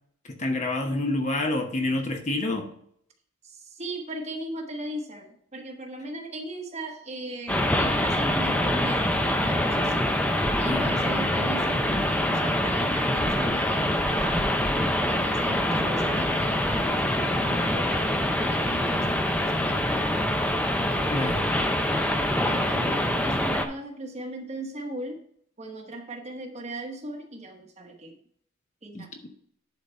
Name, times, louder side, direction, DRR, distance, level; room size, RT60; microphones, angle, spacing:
voice 1, 0.3-2.7 10.7-11.0 21.1-21.5 28.9-29.3, left 2 dB, 35° left, 1.0 m, -28 dB
voice 2, 3.4-10.1 10.6-14.4 15.1-20.3 20.8-21.8 22.5-25.2 25.6-28.1 28.8-29.3, right 1 dB, 30° right, 1.1 m, -38 dB
sound 1, 7.5-23.7, left 1 dB, 5° left, 0.6 m, -25 dB
10.5 x 4.0 x 4.3 m
head